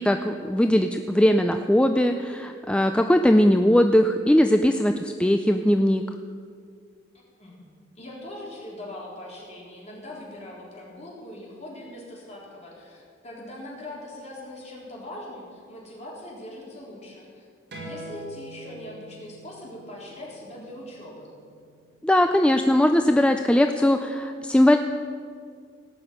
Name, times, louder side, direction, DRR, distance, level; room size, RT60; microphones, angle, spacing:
voice 1, 0.0-6.0 22.0-24.8, left 1 dB, 5° left, 6 dB, 0.4 m, -20 dB
voice 2, 8.0-17.5 17.8-21.3, left 1 dB, 35° left, -4 dB, 3.8 m, -41 dB
sound 1, 17.7-22.9, right 1 dB, 60° right, 4.1 m, -44 dB
17.5 x 6.1 x 8.8 m, 2.2 s
head